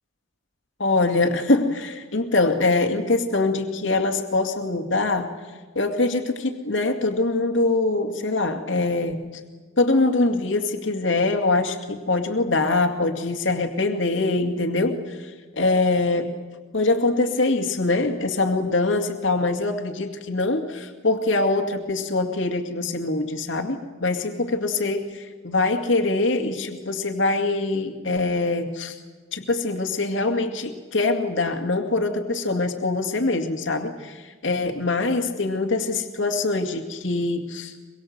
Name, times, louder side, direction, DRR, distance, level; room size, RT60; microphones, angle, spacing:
voice 1, 0.8-5.3 5.8-9.2 9.8-15.3 15.6-16.3 16.7-29.0 29.3-37.7, left 2 dB, 65° left, 4 dB, 2.3 m, -23 dB
24.5 x 23.5 x 8.0 m, 1.4 s
head